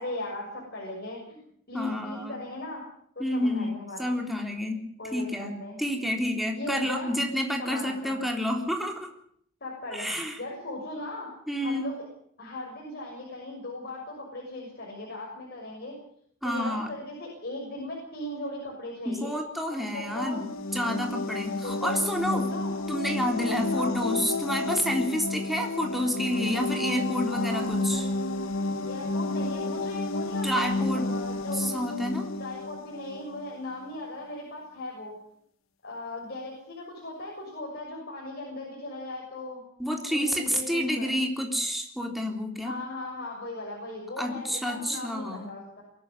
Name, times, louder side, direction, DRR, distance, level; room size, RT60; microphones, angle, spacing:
voice 1, 0.0-1.4 1.7-2.8 3.1-4.1 5.0-5.8 6.5-7.1 7.6-8.2 9.6-11.3 11.6-12.0 12.4-16.0 16.4-19.3 19.7-20.4 21.6-22.7 23.4-24.0 27.3-28.2 28.8-31.7 32.4-35.1 35.8-39.6 40.1-41.1 42.6-45.8, left 2 dB, 50° left, -2 dB, 6.8 m, -38 dB
voice 2, 1.7-2.3 3.2-3.7 4.0-4.8 5.1-5.5 5.8-9.1 9.9-10.4 11.5-11.8 16.4-16.9 19.1-20.4 20.7-22.5 22.9-28.1 30.4-31.1 31.5-32.3 39.8-42.7 44.2-45.5, equal, ahead, 2 dB, 3.6 m, -29 dB
sound 1, 20.0-33.5, left 2 dB, 70° left, 1.6 m, -31 dB
23.5 x 13.5 x 9.9 m, 0.65 s
head